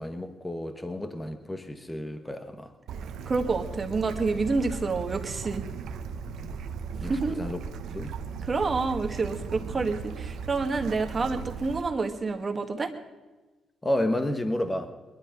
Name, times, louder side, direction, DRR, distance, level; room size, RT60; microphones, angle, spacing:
voice 1, 0.0-2.7 6.4-6.5 7.0-7.6 7.9-8.1 13.8-14.9, left 1 dB, 15° left, 8 dB, 1.3 m, -31 dB
Bird / Stream, 2.9-11.8, right 6 dB, 75° right, 1.0 m, -37 dB
voice 2, 3.2-5.6 7.1-7.4 8.4-12.9, right 3 dB, 30° right, 5 dB, 1.7 m, -28 dB
21.0 x 12.0 x 5.3 m, 1.2 s
cardioid pair, 90°, 0 cm